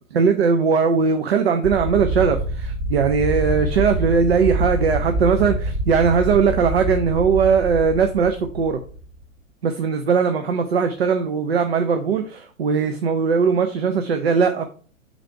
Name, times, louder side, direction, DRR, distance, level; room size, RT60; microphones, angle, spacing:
voice 1, 0.1-8.8 9.6-14.6, right 5 dB, 50° right, 7 dB, 0.7 m, -19 dB
sound 1, 1.6-9.2, right 1 dB, 25° right, 1.6 m, -26 dB
5.9 x 4.0 x 4.5 m, 0.41 s
figure-of-eight pair, 115°, 41 cm